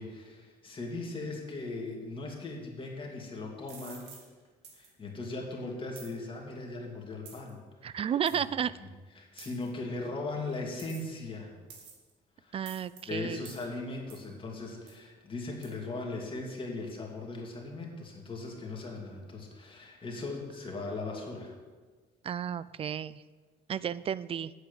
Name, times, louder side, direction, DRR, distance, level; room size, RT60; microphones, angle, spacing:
voice 1, 0.0-4.1 4.7-8.1 9.2-11.5 12.4-12.6 13.1-21.5, left 3 dB, 30° left, -1 dB, 2.5 m, -39 dB
sound 1, 3.7-4.2 4.6-4.9 5.9-6.1 7.2-7.5 8.3-8.4 9.4-9.7 10.8-11.2 11.7-12.1 12.6-13.0 13.4-13.7 14.1-14.3 14.9-15.0 15.6-15.7, right 6 dB, 85° right, 2.2 m, -49 dB
voice 2, 7.8-8.7 12.5-13.4 22.2-23.2 23.7-24.5, right 8 dB, 35° right, 18 dB, 0.4 m, -32 dB
8.4 x 8.0 x 7.0 m, 1.4 s
cardioid pair, 110°, 17 cm